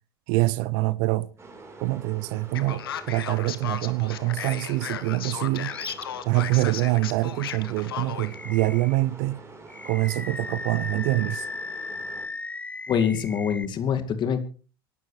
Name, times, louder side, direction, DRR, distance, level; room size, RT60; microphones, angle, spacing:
voice 1, 0.3-1.3 1.8-5.7 6.2-9.4 9.8-11.5, right 20 dB, 60° right, 0.8 m, -25 dB
sound 1, 1.4-12.3, right 3 dB, 20° right, 4.4 m, -46 dB
Male speech man speaking, 2.5-8.4, left 10 dB, 80° left, 1.5 m, -35 dB
Animal, 5.7-6.1 6.5-6.7 8.3-9.0 9.7-13.6, left 3 dB, 10° left, 0.8 m, -36 dB
voice 2, 12.9-14.5, left 7 dB, 40° left, 2.3 m, -25 dB
26.5 x 12.0 x 3.3 m
hypercardioid pair, 80°, 12 cm